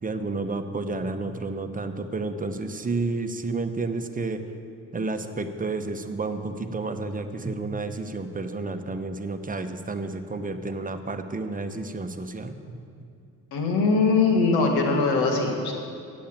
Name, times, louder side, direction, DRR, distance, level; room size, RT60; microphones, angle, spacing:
voice 1, 0.0-4.4 4.9-12.8, right 3 dB, 20° right, 7 dB, 1.0 m, -31 dB
voice 2, 13.5-15.7, left 4 dB, 80° left, 2 dB, 1.8 m, -21 dB
8.5 x 7.4 x 8.8 m, 2.5 s
supercardioid pair, 60°, 37 cm